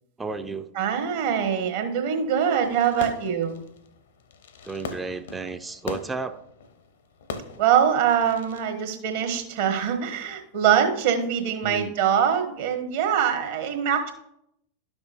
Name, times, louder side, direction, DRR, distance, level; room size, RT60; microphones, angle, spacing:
voice 1, 0.2-0.7 3.0-3.1 4.6-6.4 11.6-11.9, right 4 dB, 10° right, 9 dB, 0.4 m, -33 dB
voice 2, 0.7-3.6 7.6-14.1, right 8 dB, 55° right, 4 dB, 1.3 m, -23 dB
Fireworks, 2.6-8.7, left 4 dB, 60° left, 0.7 m, -40 dB
11.5 x 6.1 x 2.6 m, 0.76 s
figure-of-eight pair, 90°, 0 cm